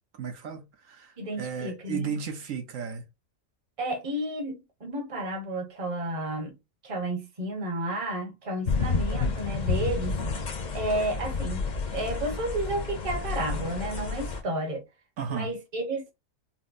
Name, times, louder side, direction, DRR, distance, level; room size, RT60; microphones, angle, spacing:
voice 1, 0.2-3.0 15.2-15.5, right 6 dB, 75° right, 1.1 m, -34 dB
voice 2, 1.2-2.1 3.8-6.6 6.8-10.2 10.7-14.8 15.3-16.1, right 1 dB, 30° right, 0.8 m, -32 dB
sound 1, 8.7-14.4, left 4 dB, 45° left, 0.6 m, -30 dB
4.2 x 2.0 x 2.5 m
omnidirectional pair, 1.4 m